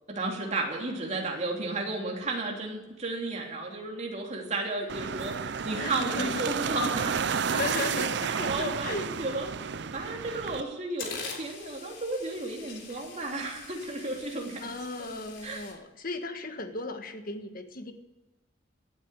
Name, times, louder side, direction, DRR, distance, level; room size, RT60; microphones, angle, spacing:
voice 1, 0.1-7.2 8.2-14.7 15.0-15.1 15.4-15.7, right 2 dB, 35° right, 0 dB, 3.1 m, -33 dB
sound 1, 4.9-10.6, right 6 dB, 60° right, 0.6 m, -31 dB
voice 2, 5.8-6.5 7.5-9.1 14.6-17.9, left 2 dB, 45° left, 7 dB, 1.6 m, -35 dB
sound 2, 10.1-10.2 10.6-15.7, left 5 dB, 70° left, 3.6 m, -44 dB
17.0 x 8.9 x 8.3 m, 1.0 s
head